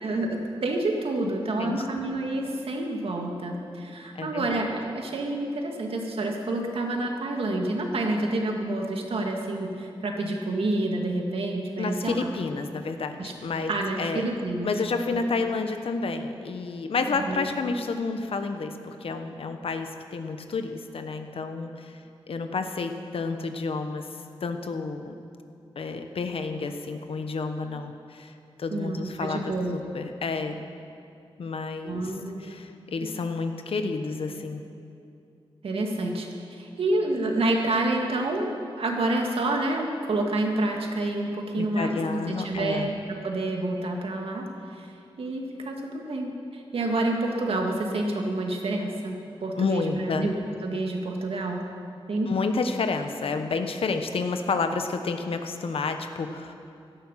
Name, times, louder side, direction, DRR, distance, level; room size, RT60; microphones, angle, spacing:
voice 1, 0.0-12.4 13.2-13.3 13.7-14.7 15.4-15.5 17.1-17.5 28.7-29.8 31.8-32.6 35.6-44.5 44.7-44.9 45.2-51.6 52.1-52.3, right 2 dB, 75° right, 1 dB, 2.1 m, -28 dB
voice 2, 4.2-4.5 11.8-13.7 14.0-14.2 14.6-22.0 22.3-24.1 24.4-25.1 25.7-28.3 28.6-30.6 31.4-32.1 32.4-34.6 41.5-42.9 49.6-50.3 52.3-56.5, left 4 dB, 75° left, 7 dB, 1.1 m, -30 dB
17.0 x 14.0 x 5.9 m, 2.6 s
wide cardioid pair, 155°, 10 cm